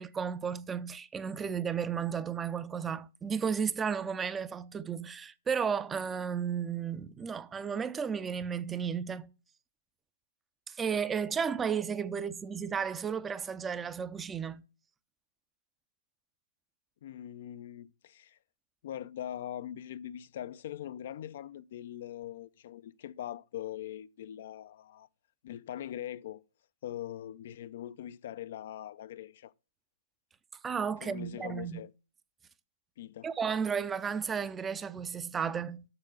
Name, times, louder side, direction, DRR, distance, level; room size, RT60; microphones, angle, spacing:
voice 1, 0.0-9.3 10.7-14.6 30.6-31.9 33.2-35.8, right 7 dB, 15° right, 0.5 m, -33 dB
voice 2, 17.0-18.4 18.8-25.1 25.4-26.4 26.8-29.5 31.0-31.9 33.0-33.3, left 11 dB, 55° left, 0.5 m, -42 dB
6.9 x 6.7 x 6.7 m
hypercardioid pair, 125°, 0 cm